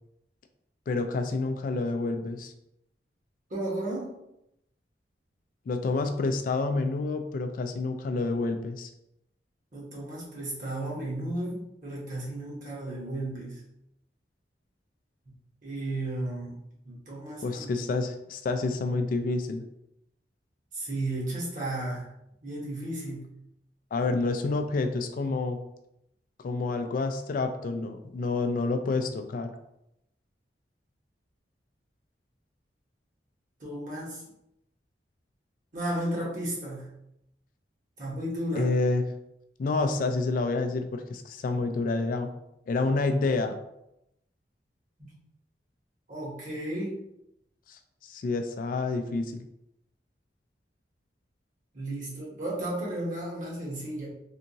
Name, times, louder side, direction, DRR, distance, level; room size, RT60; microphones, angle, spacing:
voice 1, 0.9-2.5 5.7-8.9 17.4-19.6 23.9-25.6 26.4-29.5 38.6-39.1 39.6-42.3 42.7-43.6 47.7-47.8 48.1-49.4, left 3 dB, 50° left, 7 dB, 0.3 m, -28 dB
voice 2, 3.5-4.1 9.7-13.6 15.3-15.4 15.6-17.7 20.7-22.1 22.4-23.3 33.6-34.2 35.7-36.9 38.0-38.7 45.0-45.1 46.1-47.0 51.7-54.1, right 1 dB, 50° right, -5 dB, 1.2 m, -34 dB
3.5 x 2.8 x 2.7 m, 0.82 s
head